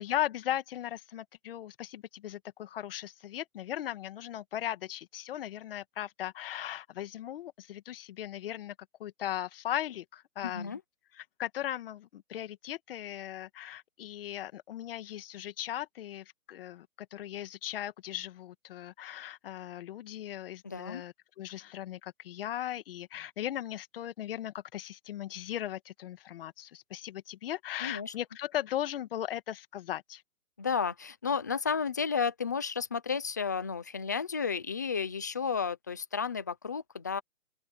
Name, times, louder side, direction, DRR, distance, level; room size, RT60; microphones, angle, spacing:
voice 1, 0.0-8.7 9.0-10.8 11.1-30.2, left 12 dB, 40° left, 2.0 m, -38 dB
voice 2, 10.4-10.8 20.6-21.0 27.8-28.1 30.6-37.2, left 6 dB, 15° left, 0.5 m, -32 dB
open air
hypercardioid pair, 155°, 44 cm